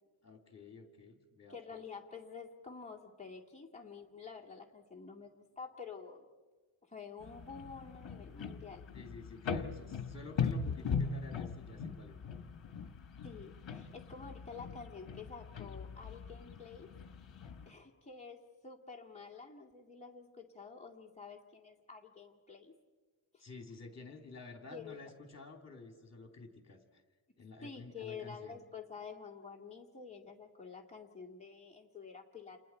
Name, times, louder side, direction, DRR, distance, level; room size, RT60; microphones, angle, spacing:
voice 1, 0.2-1.8 8.9-12.2 23.4-27.0 27.4-28.6, left 3 dB, 30° left, 3 dB, 2.9 m, -51 dB
voice 2, 1.5-6.3 6.9-8.8 13.2-16.9 17.7-22.7 23.3-23.4 24.7-25.0 27.6-32.6, left 5 dB, 15° left, -1 dB, 2.2 m, -49 dB
sound 1, 7.2-17.7, left 5 dB, 60° left, 1.2 m, -40 dB
29.5 x 28.5 x 4.5 m, 1.3 s
wide cardioid pair, 150°, 50 cm